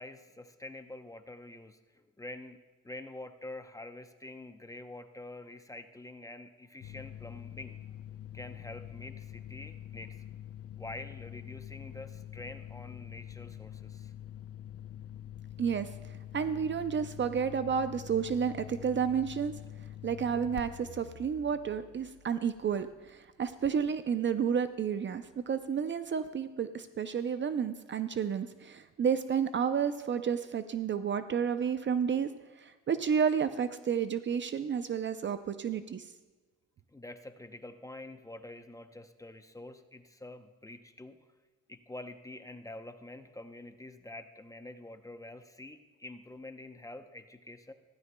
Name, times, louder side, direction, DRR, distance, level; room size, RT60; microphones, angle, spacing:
voice 1, 0.0-2.6 2.8-7.8 8.3-10.1 10.8-14.1 36.9-41.2 41.7-47.7, left 2 dB, 10° left, 8 dB, 0.7 m, -46 dB
sound 1, 6.8-23.2, left 11 dB, 50° left, 0.5 m, -46 dB
voice 2, 15.6-15.9 16.3-19.5 20.0-32.3 32.6-36.1, right 7 dB, 40° right, 11 dB, 0.5 m, -31 dB
15.5 x 14.0 x 2.2 m, 1.3 s
cardioid pair, 90°, 30 cm